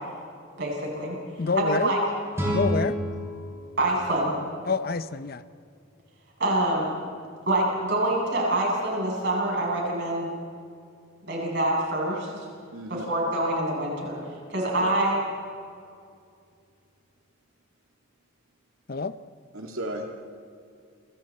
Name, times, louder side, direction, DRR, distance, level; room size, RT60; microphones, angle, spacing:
voice 1, 0.6-1.2 1.6-2.0 3.8-4.3 6.4-6.9 7.5-10.3 11.2-12.4 12.9-14.2 14.5-15.2, right 1 dB, 55° right, -3 dB, 8.0 m, -26 dB
voice 2, 1.4-1.9 2.5-3.0 4.6-5.4 18.9-19.2, left 4 dB, 45° left, 13 dB, 0.7 m, -27 dB
sound 1, 2.3-5.4, equal, 15° right, 5.8 m, -31 dB
voice 3, 12.7-13.1 14.8-14.9 19.5-20.2, right 1 dB, 85° right, 1 dB, 2.4 m, -35 dB
29.5 x 25.5 x 4.3 m, 2.4 s
head